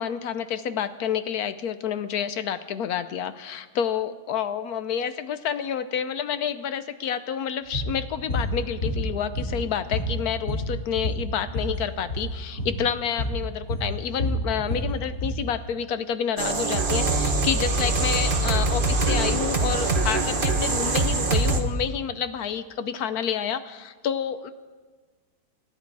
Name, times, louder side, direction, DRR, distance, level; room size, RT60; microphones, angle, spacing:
voice 1, 0.0-24.5, left 8 dB, 65° left, 11 dB, 0.9 m, -29 dB
sound 1, 7.7-7.9 8.3-8.5 8.8-9.7 9.9-11.7 12.0-12.3 12.6-12.8 13.2-13.4 13.7-15.4, left 1 dB, 45° left, 4.0 m, -28 dB
sound 2, 16.4-21.6, right 2 dB, 35° right, 1.0 m, -23 dB
26.0 x 11.0 x 4.7 m, 1.4 s
omnidirectional pair, 2.2 m